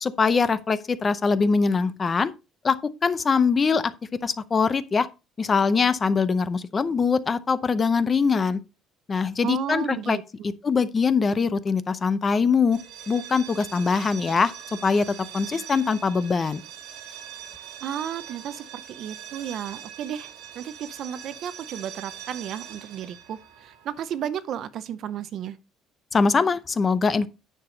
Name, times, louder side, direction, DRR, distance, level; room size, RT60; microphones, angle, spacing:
voice 1, 0.0-2.3 2.6-2.8 3.0-3.9 4.2-5.1 5.4-8.6 9.1-10.2 10.6-14.5 14.8-16.6 26.1-27.3, left 5 dB, 20° left, 0.6 m, -22 dB
voice 2, 9.4-10.2 17.8-20.3 20.6-25.6, right 9 dB, 45° right, 0.6 m, -33 dB
sound 1, 12.6-24.3, right 9 dB, 70° right, 1.9 m, -42 dB
9.9 x 6.8 x 3.9 m
cardioid pair, 175°, 0 cm